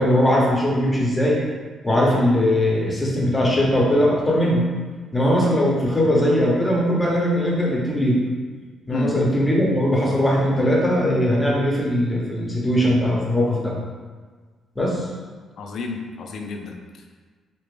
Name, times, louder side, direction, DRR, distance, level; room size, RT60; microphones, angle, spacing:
voice 1, 0.0-1.4 1.8-4.6 5.1-8.2 8.9-13.7 14.8-15.1, equal, 15° left, -4 dB, 1.0 m, -20 dB
voice 2, 15.6-17.1, left 4 dB, 65° left, 3 dB, 0.5 m, -31 dB
3.5 x 2.9 x 3.3 m, 1.5 s
cardioid pair, 90°, 0 cm